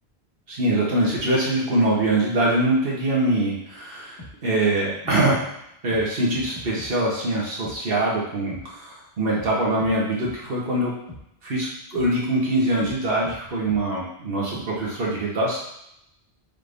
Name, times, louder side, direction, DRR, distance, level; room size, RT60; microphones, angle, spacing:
voice 1, 0.5-5.4 5.8-10.9 11.4-15.6, right 1 dB, 65° right, -4 dB, 1.3 m, -23 dB
sound 1, 4.2-4.3 5.0-5.2 5.9-6.0 6.3-6.9 7.6-7.8 8.5-8.6 9.4-9.5 9.8-9.9 10.2-10.4 11.1-11.2 11.9-12.1 12.8-13.0 13.2-13.4 13.7-13.8 14.5-14.6, left 1 dB, 35° left, 1.1 m, -40 dB
5.1 x 3.5 x 2.6 m, 0.79 s
omnidirectional pair, 1.1 m